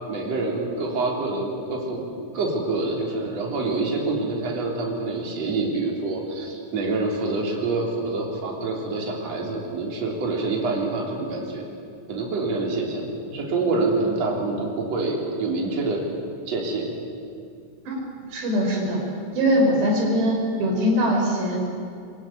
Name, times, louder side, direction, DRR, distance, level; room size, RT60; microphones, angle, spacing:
voice 1, 0.1-2.1 2.3-11.6 12.1-16.0 16.5-16.9, right 3 dB, 35° right, -1 dB, 4.2 m, -26 dB
voice 2, 18.3-19.0 19.3-21.6, equal, 60° right, 0 dB, 6.9 m, -22 dB
23.0 x 23.0 x 9.5 m, 2.4 s
omnidirectional pair, 5.8 m